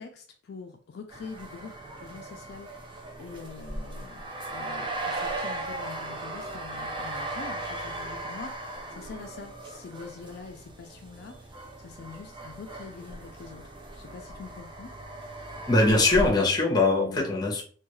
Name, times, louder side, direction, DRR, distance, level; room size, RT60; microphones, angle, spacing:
voice 1, 0.0-13.7 14.0-14.9 17.0-17.5, left 4 dB, 60° left, 0.3 m, -45 dB
sound 1, 1.1-16.3, right 2 dB, 25° right, 0.4 m, -37 dB
voice 2, 15.7-17.6, left 2 dB, 20° left, 0.7 m, -22 dB
2.3 x 2.3 x 3.0 m
head